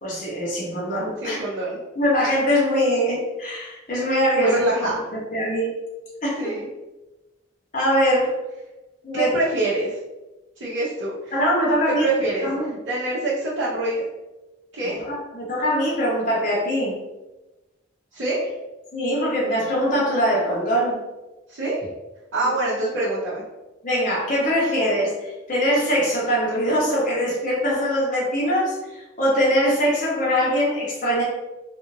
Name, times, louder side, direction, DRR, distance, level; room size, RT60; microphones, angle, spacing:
voice 1, 0.0-1.4 1.9-4.6 5.1-5.7 6.2-6.5 7.7-8.3 9.0-9.3 11.3-12.1 12.4-12.7 14.8-17.0 18.9-21.0 22.4-22.5 23.8-25.2 25.5-31.2, equal, 40° left, -5 dB, 0.9 m, -22 dB
voice 2, 1.2-1.8 4.4-5.1 6.4-6.7 9.1-9.9 10.6-11.3 11.9-14.1 14.7-15.0 18.1-18.5 21.5-21.9 22.3-23.4, right 2 dB, 85° right, -10 dB, 0.9 m, -25 dB
3.4 x 2.6 x 2.9 m, 1.1 s
head